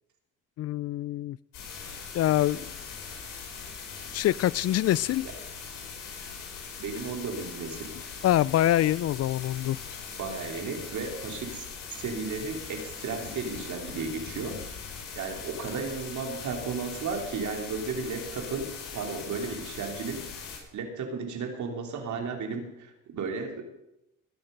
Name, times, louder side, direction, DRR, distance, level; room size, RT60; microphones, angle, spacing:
voice 1, 0.6-1.4 2.1-2.7 4.1-5.3 8.2-9.8, left 13 dB, 55° left, 23 dB, 0.4 m, -25 dB
sound 1, 1.5-20.6, left 6 dB, 80° left, 5.1 m, -41 dB
voice 2, 6.8-7.9 10.2-11.7 12.0-14.7 15.2-20.3 20.7-23.6, right 4 dB, 65° right, 3 dB, 3.4 m, -34 dB
20.5 x 9.0 x 5.3 m, 0.88 s
supercardioid pair, 75°, 31 cm